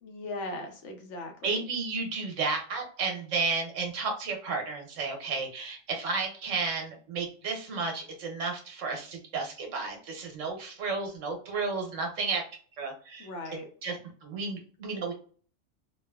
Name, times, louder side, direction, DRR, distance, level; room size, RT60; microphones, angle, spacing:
voice 1, 0.0-1.6 13.2-13.7, left 2 dB, 70° left, 3 dB, 1.0 m, -39 dB
voice 2, 1.4-12.4 12.8-13.3 13.8-15.2, right 4 dB, 75° right, 2 dB, 1.2 m, -32 dB
3.0 x 2.3 x 2.2 m, 0.44 s
omnidirectional pair, 1.3 m